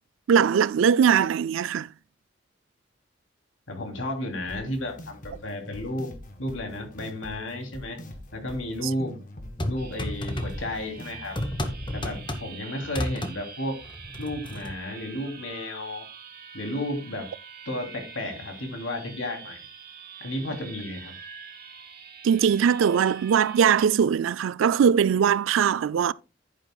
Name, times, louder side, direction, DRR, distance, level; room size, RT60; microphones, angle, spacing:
voice 1, 0.3-1.9 22.2-26.1, right 7 dB, 85° right, 0.3 m, -21 dB
voice 2, 3.7-6.1 6.4-8.0 8.3-9.2 9.7-11.4 11.9-13.8 14.2-16.1 16.5-17.3 17.6-19.6 20.2-21.2, left 1 dB, 80° left, 3.0 m, -33 dB
sound 1, 4.5-11.5, left 1 dB, 45° left, 1.7 m, -43 dB
sound 2, 9.6-10.9 11.4-12.6 12.9-13.4 13.8-14.7, left 1 dB, 25° left, 1.2 m, -32 dB
sound 3, 9.8-23.8, right 6 dB, 50° right, 2.0 m, -45 dB
10.5 x 9.7 x 2.3 m
head